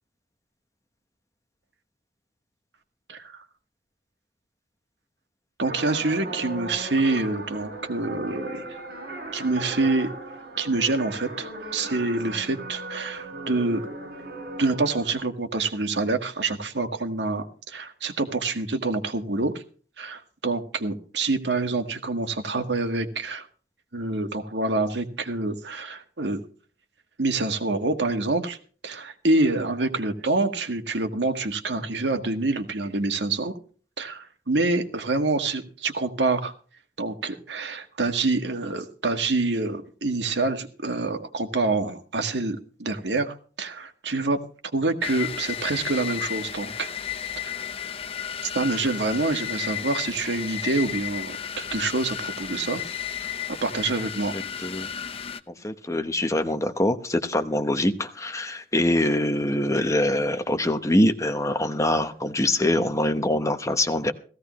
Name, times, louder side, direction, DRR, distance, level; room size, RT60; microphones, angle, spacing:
sound 1, 5.6-15.1, right 2 dB, 60° right, 7.6 m, -37 dB
voice 1, 5.6-8.6 9.3-10.1 10.6-13.9 14.6-19.6 20.0-23.5 23.9-26.4 27.2-28.6 28.8-33.5 34.0-36.5 37.0-44.4 44.7-46.9 47.4-47.5 48.4-52.8 53.2-53.3 53.6-54.3, right 3 dB, 80° right, 1.7 m, -26 dB
sound 2, 45.0-55.4, left 9 dB, 35° left, 0.7 m, -33 dB
voice 2, 55.6-64.1, left 1 dB, 20° left, 1.1 m, -24 dB
17.0 x 15.5 x 3.1 m
head